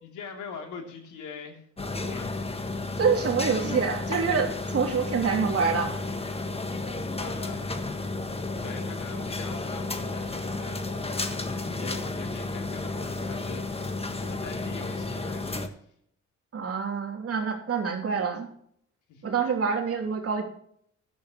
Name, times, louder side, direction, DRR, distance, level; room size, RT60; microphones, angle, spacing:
voice 1, 0.0-2.5 7.2-7.8 8.6-10.9 11.1-15.8 19.1-19.4, left 5 dB, 80° left, 3 dB, 3.0 m, -43 dB
sound 1, 1.8-15.7, left 2 dB, 20° left, 1.6 m, -32 dB
voice 2, 3.0-6.0 16.5-18.5 19.2-20.4, right 5 dB, 50° right, 2 dB, 3.0 m, -26 dB
15.0 x 11.0 x 3.0 m, 0.66 s
cardioid pair, 90°, 30 cm